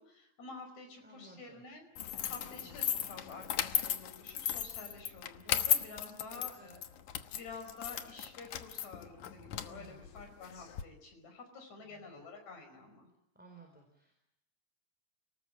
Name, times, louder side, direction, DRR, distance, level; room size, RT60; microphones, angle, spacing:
voice 1, 0.0-1.8 2.3-6.8 7.3-13.1, left 4 dB, 70° left, 5 dB, 6.5 m, -49 dB
voice 2, 1.0-1.6 6.0-6.7 9.7-10.2 11.8-12.0 13.3-14.1, right 1 dB, 5° right, 2 dB, 4.3 m, -57 dB
sound 1, 2.0-10.8, left 10 dB, 90° left, 2.7 m, -36 dB
30.0 x 19.5 x 8.9 m, 0.80 s
omnidirectional pair, 3.4 m